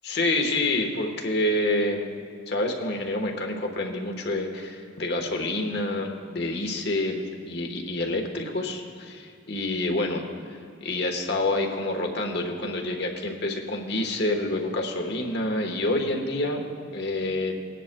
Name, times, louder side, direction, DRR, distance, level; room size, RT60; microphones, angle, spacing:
voice 1, 0.0-2.1 2.5-10.2 10.5-17.7, left 2 dB, 55° left, 2 dB, 1.2 m, -28 dB
19.5 x 10.0 x 2.2 m, 2.4 s
head